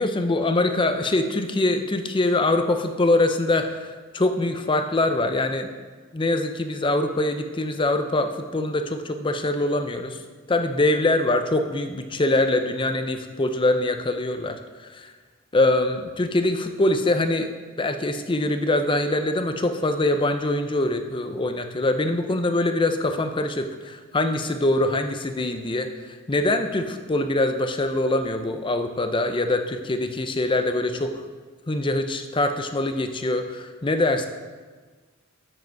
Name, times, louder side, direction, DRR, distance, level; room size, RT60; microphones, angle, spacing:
voice 1, 0.0-5.7 6.1-10.2 10.5-15.1 15.5-17.5 17.8-31.1 31.7-34.3, left 2 dB, 25° left, 7 dB, 0.5 m, -23 dB
7.9 x 7.7 x 4.5 m, 1.4 s
head